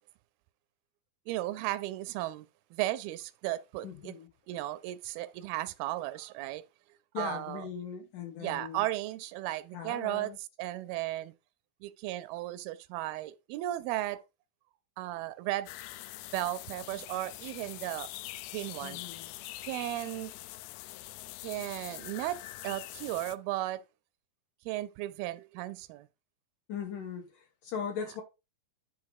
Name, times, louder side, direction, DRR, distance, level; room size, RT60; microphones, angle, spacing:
voice 1, 1.3-2.5 2.7-4.1 4.5-6.6 7.2-7.7 8.4-11.3 11.8-14.2 15.0-15.7 16.3-18.1 18.5-19.0 19.6-20.3 21.4-22.4 22.6-23.8 24.7-26.1, right 15 dB, 85° right, 2.4 m, -35 dB
voice 2, 3.8-4.3 7.1-8.8 9.7-10.4 18.8-19.3 26.7-28.2, left 7 dB, 70° left, 2.3 m, -39 dB
sound 1, 15.7-23.4, left 17 dB, 85° left, 2.5 m, -44 dB
10.5 x 3.7 x 4.8 m
omnidirectional pair, 4.4 m